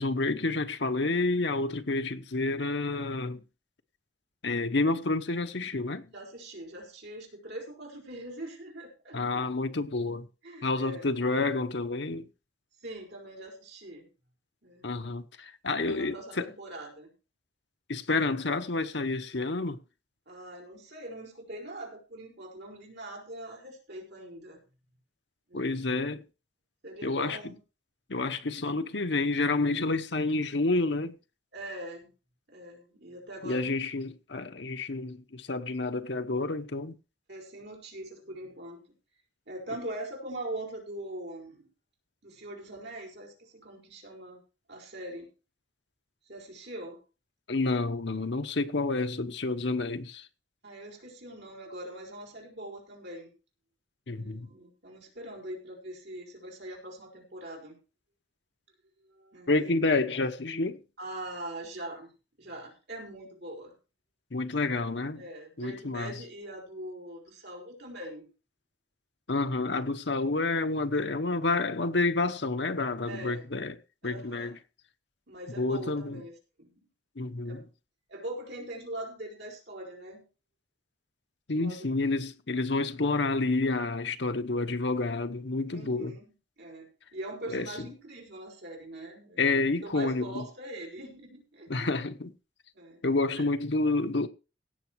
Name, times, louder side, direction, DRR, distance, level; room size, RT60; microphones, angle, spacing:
voice 1, 0.0-3.4 4.4-6.1 9.1-10.3 10.6-12.3 14.8-16.5 17.9-19.8 25.5-26.2 27.0-27.4 28.1-31.1 33.4-37.0 47.5-50.3 54.1-54.5 59.5-60.8 64.3-65.2 65.6-66.1 69.3-73.7 74.0-74.5 75.6-76.2 77.2-77.6 81.5-86.1 87.5-87.7 89.4-90.5 91.7-92.3 93.0-94.3, left 3 dB, 70° left, 1.0 m, -29 dB
voice 2, 6.1-9.4 10.4-11.1 12.8-14.1 14.6-14.9 15.8-17.1 20.3-24.6 25.5-25.7 26.8-27.6 31.5-32.1 32.5-33.7 37.3-38.8 39.5-41.7 42.2-44.4 44.7-45.3 46.2-47.0 50.6-53.3 54.1-57.8 59.0-59.7 61.0-62.1 62.4-63.7 65.2-68.3 73.1-73.5 74.0-74.6 75.3-76.8 77.5-77.6 78.1-80.3 81.6-81.9 85.7-91.9 92.7-93.0 93.3-93.5, right 1 dB, 65° right, 5.3 m, -42 dB
17.0 x 7.1 x 4.7 m
head